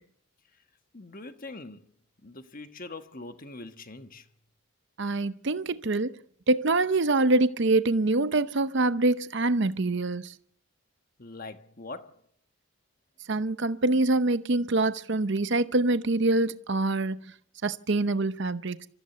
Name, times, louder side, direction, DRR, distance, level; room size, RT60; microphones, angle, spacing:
voice 1, 0.9-1.9 2.2-4.3 11.2-12.2, left 2 dB, 40° left, 1.4 m, -42 dB
voice 2, 5.0-6.2 6.5-10.3 13.3-17.3 17.6-18.9, right 2 dB, 55° right, 0.8 m, -25 dB
27.0 x 14.5 x 6.9 m
head